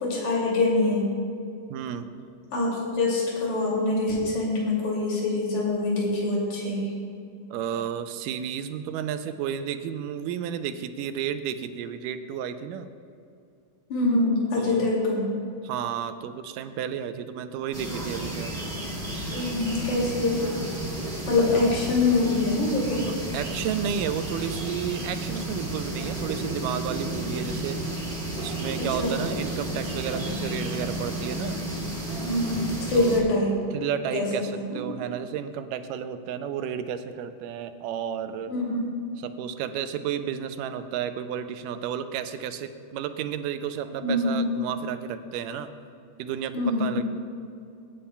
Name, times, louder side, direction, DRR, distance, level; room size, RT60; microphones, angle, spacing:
voice 1, 0.0-1.1 2.5-6.9 13.9-15.3 19.3-20.5 21.3-23.1 28.7-29.2 32.2-33.5 34.1-34.3 34.6-34.8 38.5-38.9 44.0-44.5 46.5-47.0, left 2 dB, 65° left, -4 dB, 3.9 m, -25 dB
voice 2, 1.7-2.1 7.5-12.9 14.6-14.9 15.6-18.5 21.5-21.7 23.3-27.9 28.4-31.6 33.0-33.3 33.7-38.5 39.2-45.7 46.2-46.5 46.8-47.0, right 8 dB, 85° right, 9 dB, 2.2 m, -32 dB
sound 1, 17.7-33.2, right 1 dB, 20° right, 2.2 m, -32 dB
22.5 x 9.9 x 2.3 m, 2.5 s
omnidirectional pair, 3.8 m